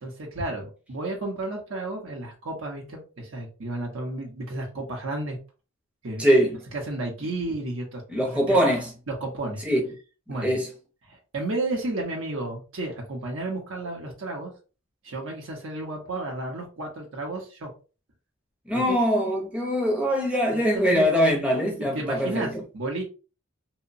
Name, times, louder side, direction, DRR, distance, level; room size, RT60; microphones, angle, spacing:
voice 1, 0.0-5.4 6.0-6.3 6.7-8.6 9.1-9.6 10.3-10.6 11.1-14.5 15.0-17.7 18.7-19.0 20.5-21.1 21.8-23.0, right 2 dB, 75° right, 0.7 m, -32 dB
voice 2, 6.2-6.6 8.1-8.9 9.6-9.9 10.4-10.7 18.7-22.6, equal, 5° right, 0.5 m, -22 dB
2.8 x 2.1 x 2.5 m
head